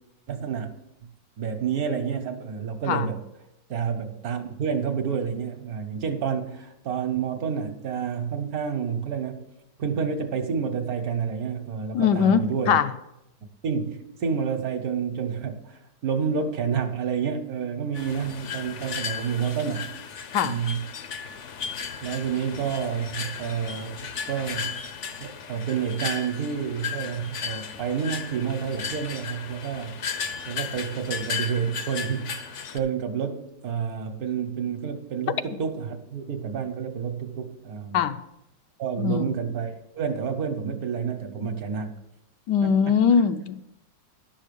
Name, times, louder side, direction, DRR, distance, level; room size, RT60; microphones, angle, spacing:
voice 1, 0.3-0.7 1.0-1.1 1.4-3.2 3.7-9.4 9.8-12.8 13.6-19.9 20.4-20.8 22.0-24.8 25.2-30.0 30.5-38.0 38.8-41.9 42.6-43.0, right 7 dB, 60° right, 1.4 m, -29 dB
voice 2, 11.9-12.9 20.3-20.6 37.9-38.2 39.0-39.3 42.5-43.6, left 7 dB, 75° left, 1.2 m, -21 dB
sound 1, 17.9-32.8, left 6 dB, 55° left, 0.9 m, -35 dB
11.5 x 6.4 x 6.8 m
omnidirectional pair, 1.9 m